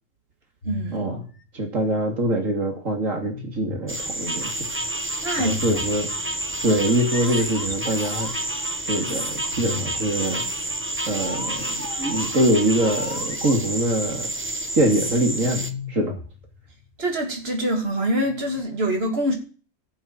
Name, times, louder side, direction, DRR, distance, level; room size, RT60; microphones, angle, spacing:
sound 1, 0.6-2.4 3.2-4.1 5.4-6.4 7.1-8.7 9.4-13.9 15.2-17.1 18.2-18.6, left 5 dB, 85° left, 2.9 m, -37 dB
voice 1, 0.6-1.1 5.2-5.8 17.0-19.3, right 1 dB, 50° right, 3.1 m, -25 dB
voice 2, 1.5-4.6 5.4-6.1 6.6-8.3 8.9-10.4 11.1-14.3 14.8-16.2, right 1 dB, 80° right, 2.9 m, -24 dB
sound 2, 3.9-15.7, right 1 dB, 10° right, 1.0 m, -29 dB
16.0 x 7.4 x 7.7 m
omnidirectional pair, 1.3 m